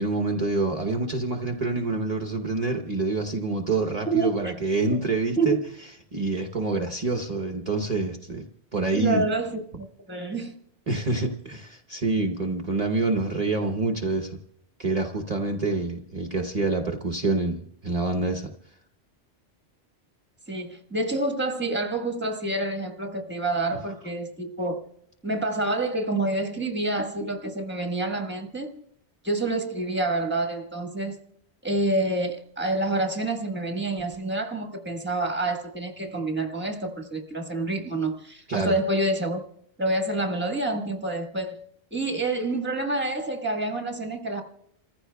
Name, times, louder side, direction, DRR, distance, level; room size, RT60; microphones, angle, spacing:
voice 1, 0.0-5.6 6.1-8.4 8.7-9.2 10.9-14.4 14.8-18.5 38.5-38.8, right 3 dB, 40° right, 0.9 m, -27 dB
voice 2, 4.1-4.5 5.4-5.5 8.9-10.6 20.5-24.8 25.2-28.8 29.2-31.2 31.6-39.4 39.8-41.6 41.9-44.4, right 2 dB, 10° right, 1.3 m, -27 dB
29.0 x 15.0 x 2.2 m
omnidirectional pair, 1.1 m